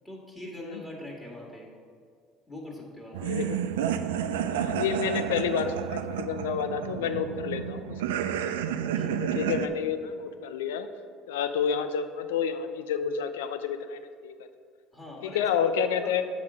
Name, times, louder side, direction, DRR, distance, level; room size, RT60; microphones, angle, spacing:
voice 1, 0.0-1.7 2.5-3.2 8.9-9.2 14.9-15.4 16.0-16.2, left 1 dB, 5° left, -3 dB, 1.9 m, -42 dB
sound 1, 3.1-9.7, right 9 dB, 85° right, 0.3 m, -30 dB
voice 2, 3.2-3.7 4.5-8.0 8.4-8.5 9.1-10.9 11.3-14.3 15.3-16.2, left 7 dB, 85° left, 9 dB, 0.4 m, -29 dB
7.9 x 3.6 x 6.1 m, 2.1 s
hypercardioid pair, 80°, 0 cm